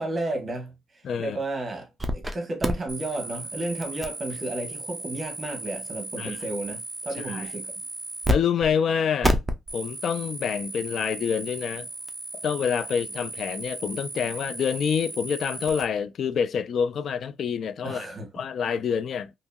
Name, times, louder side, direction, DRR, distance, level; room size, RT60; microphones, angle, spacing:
voice 1, 0.0-7.7 17.8-18.3, right 2 dB, 30° right, 1.1 m, -32 dB
voice 2, 1.0-1.4 6.2-6.4 7.3-7.4 8.3-9.4 9.7-11.9 12.4-18.1 18.3-19.3, left 7 dB, 60° left, 0.3 m, -27 dB
sound 1, 2.0-2.3 2.6-8.4 8.6-8.7 9.2-15.8, equal, 10° right, 0.5 m, -32 dB
2.8 x 2.7 x 2.2 m
cardioid pair, 90°, 0 cm